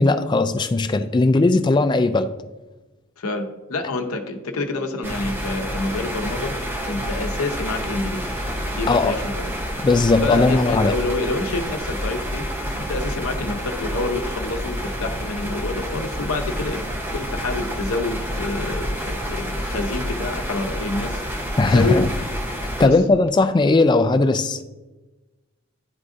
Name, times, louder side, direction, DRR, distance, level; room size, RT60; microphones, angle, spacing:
voice 1, 0.0-2.3 8.9-9.1 9.8-10.9 21.6-22.1 22.8-24.6, left 3 dB, 20° left, 0.3 m, -18 dB
voice 2, 3.2-6.6 6.9-8.3 8.7-9.7 10.2-12.5 12.8-21.2 21.7-22.0 22.8-22.9, left 2 dB, 85° left, 0.8 m, -27 dB
sound 1, 5.0-22.9, equal, 10° right, 0.7 m, -28 dB
11.0 x 3.6 x 2.6 m
head